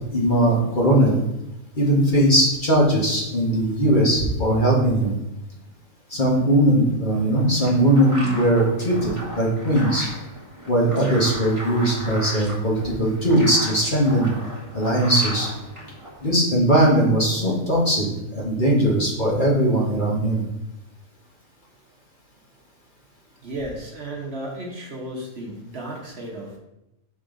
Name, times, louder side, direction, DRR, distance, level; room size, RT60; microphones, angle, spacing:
voice 1, 0.1-1.2 1.7-5.1 6.1-10.1 10.7-14.3 14.7-15.5 16.2-18.1 18.3-20.4, right 1 dB, 35° left, -4 dB, 1.6 m, -19 dB
sound 1, 7.1-16.3, equal, 20° right, 1.5 m, -37 dB
voice 2, 23.4-26.6, right 1 dB, 50° right, -1 dB, 1.3 m, -34 dB
6.3 x 5.4 x 3.9 m, 0.89 s
omnidirectional pair, 1.5 m